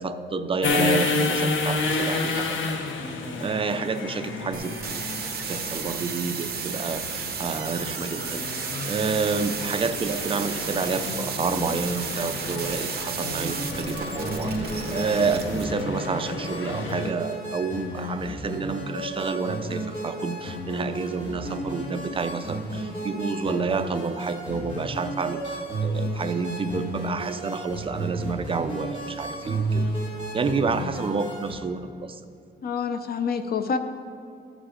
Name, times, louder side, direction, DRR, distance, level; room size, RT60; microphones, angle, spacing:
voice 1, 0.0-2.8 3.4-5.0 5.5-8.4 8.9-29.9 30.3-32.2, right 4 dB, 25° right, 8 dB, 0.5 m, -29 dB
sound 1, 0.6-17.1, left 3 dB, 75° left, 0.9 m, -31 dB
sound 2, 4.5-15.6, right 6 dB, 50° right, 0.9 m, -33 dB
sound 3, 13.2-31.5, right 1 dB, 25° left, 2.2 m, -33 dB
voice 2, 32.6-33.8, left 6 dB, 50° left, 9 dB, 0.5 m, -27 dB
13.5 x 5.0 x 5.0 m, 2.5 s
wide cardioid pair, 140°, 20 cm